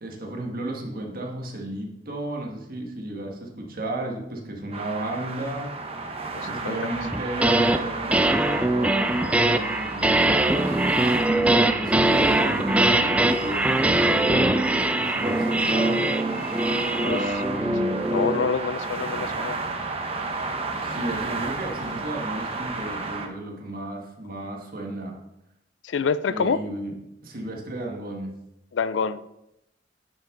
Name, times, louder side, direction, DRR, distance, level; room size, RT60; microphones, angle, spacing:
voice 1, 0.0-5.7 6.5-10.7 11.2-16.0 16.4-16.5 17.0-18.1 20.8-25.2 26.3-26.9 27.2-28.3, right 1 dB, 50° right, 1 dB, 1.6 m, -33 dB
sound 1, 4.7-23.3, right 3 dB, 35° right, 0.9 m, -33 dB
voice 2, 6.4-6.8 17.1-17.2 18.1-19.6 25.8-26.6 28.7-29.2, left 5 dB, 80° left, 15 dB, 0.4 m, -26 dB
sound 2, 7.1-7.8 8.1-18.5, right 1 dB, 5° right, 0.3 m, -22 dB
10.0 x 5.9 x 3.8 m, 0.87 s
head